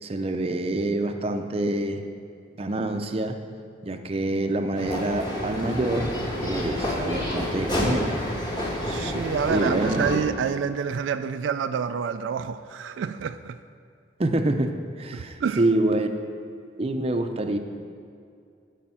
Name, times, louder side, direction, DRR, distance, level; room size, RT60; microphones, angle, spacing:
voice 1, 0.0-2.1 2.6-3.4 3.8-6.1 6.4-8.2 9.5-10.3 14.2-16.1 16.8-17.6, right 2 dB, 30° right, 0.5 m, -26 dB
sound 1, 4.7-10.2, left 1 dB, 25° left, 1.5 m, -29 dB
voice 2, 8.8-13.6 15.1-15.6, right 6 dB, 85° right, 0.3 m, -28 dB
12.0 x 5.0 x 5.6 m
head